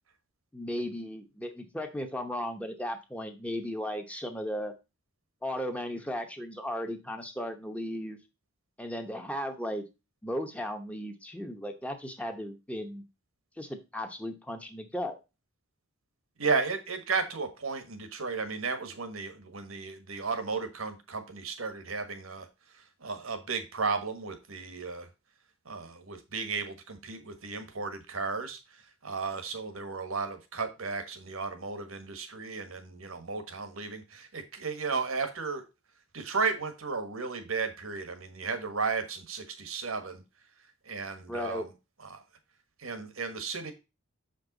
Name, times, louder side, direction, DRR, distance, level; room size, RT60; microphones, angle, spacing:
voice 1, 0.5-4.7 5.4-8.2 8.8-9.8 10.2-13.0 13.6-15.2 41.3-41.7, equal, 5° left, 6 dB, 0.9 m, -36 dB
voice 2, 16.4-22.5 23.0-25.1 25.6-28.6 29.0-35.6 36.1-40.2 40.9-41.7 42.0-42.2 42.8-43.7, right 4 dB, 80° right, 8 dB, 1.4 m, -34 dB
6.8 x 5.3 x 4.0 m, 0.27 s
head